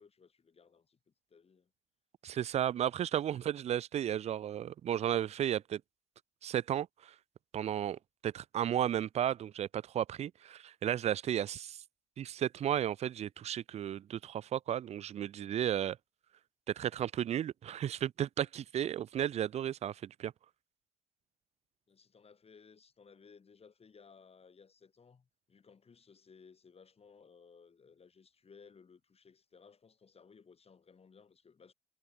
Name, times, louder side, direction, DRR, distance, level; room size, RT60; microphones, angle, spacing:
voice 1, 0.0-1.7 21.9-31.7, left 5 dB, 35° left, 7.1 m, -60 dB
voice 2, 2.2-5.8 6.4-7.1 7.5-11.8 12.2-16.0 16.7-20.3, right 10 dB, 40° right, 0.4 m, -34 dB
hypercardioid pair, 55°, 17 cm